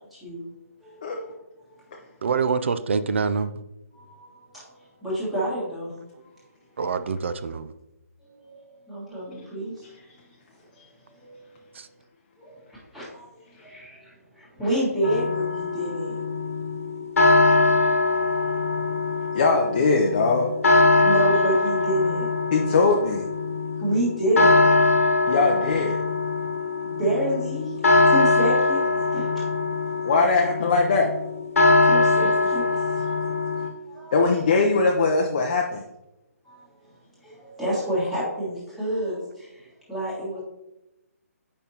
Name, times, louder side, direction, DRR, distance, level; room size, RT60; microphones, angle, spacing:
voice 1, 0.1-0.4 0.8-1.3 3.9-6.3 8.2-9.8 11.1-11.4 12.4-16.1 17.9-18.3 21.0-22.4 23.8-24.7 26.8-29.5 31.8-33.2 33.5-34.4 36.4-36.7 37.2-40.4, right 1 dB, ahead, -9 dB, 1.6 m, -29 dB
voice 2, 2.2-3.5 6.8-7.7 11.8-11.9, right 5 dB, 45° right, 12 dB, 0.4 m, -25 dB
sound 1, 15.0-33.7, left 3 dB, 55° left, 1.2 m, -22 dB
voice 3, 19.3-20.5 22.5-23.3 25.3-26.0 30.0-31.1 34.1-35.8, left 3 dB, 30° left, 1 dB, 0.6 m, -21 dB
8.2 x 5.3 x 2.8 m, 0.94 s
hypercardioid pair, 170°, 9 cm